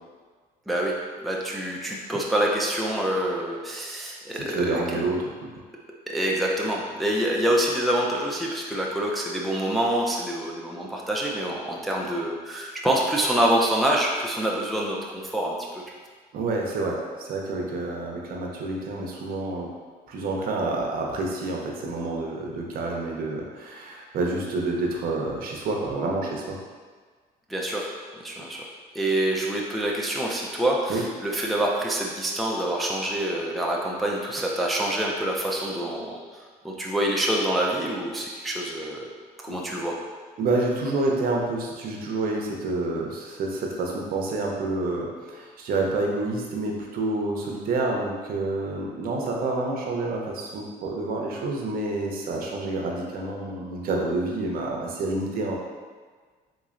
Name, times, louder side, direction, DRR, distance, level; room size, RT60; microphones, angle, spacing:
voice 1, 0.7-4.8 6.1-15.8 27.5-39.1 39.4-40.0, right 1 dB, ahead, -2 dB, 0.4 m, -26 dB
voice 2, 4.3-5.3 16.3-19.7 20.1-26.6 30.9-31.0 39.5-39.6 40.4-55.5, right 2 dB, 60° right, -1 dB, 0.7 m, -28 dB
3.7 x 3.0 x 2.5 m, 1.5 s
cardioid pair, 110°, 17 cm